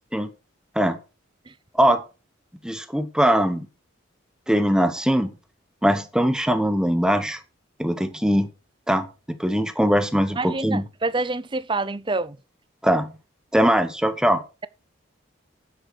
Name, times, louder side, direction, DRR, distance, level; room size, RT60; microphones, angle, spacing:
voice 1, 2.6-3.7 4.5-5.3 5.8-7.4 7.8-8.5 8.9-10.8 12.8-13.1 13.5-14.4, equal, 5° right, 0.9 m, -21 dB
voice 2, 10.4-12.4, right 3 dB, 25° right, 0.6 m, -27 dB
10.5 x 7.7 x 4.6 m
head